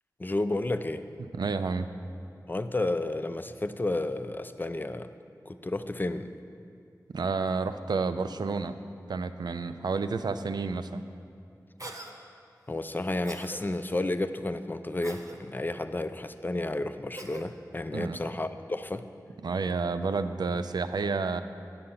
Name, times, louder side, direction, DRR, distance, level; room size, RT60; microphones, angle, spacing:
voice 1, 0.2-1.0 2.5-5.1 5.5-6.3 12.7-19.1, left 2 dB, 30° left, 10 dB, 0.4 m, -31 dB
voice 2, 1.3-1.9 7.1-8.7 9.1-11.0 17.9-18.2 19.4-21.4, right 4 dB, 85° right, 10 dB, 0.4 m, -30 dB
Cough, 11.8-12.1 13.2-13.6 15.0-15.4 17.1-17.5, right 2 dB, 50° right, 0.8 m, -42 dB
8.6 x 6.7 x 5.5 m, 2.4 s
wide cardioid pair, 55°, 7 cm